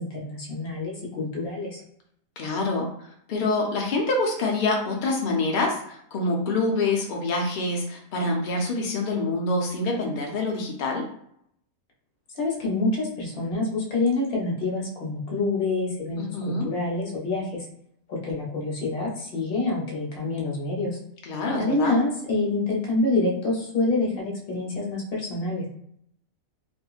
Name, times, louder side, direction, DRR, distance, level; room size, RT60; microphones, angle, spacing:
voice 1, 0.0-1.8 12.4-17.6 18.1-21.0 21.6-25.7, left 2 dB, 50° left, -2 dB, 0.9 m, -27 dB
voice 2, 2.4-2.9 3.3-11.1 16.2-16.7 21.2-22.0, left 2 dB, 75° left, 0 dB, 0.4 m, -26 dB
2.8 x 2.5 x 2.3 m, 0.70 s
omnidirectional pair, 1.5 m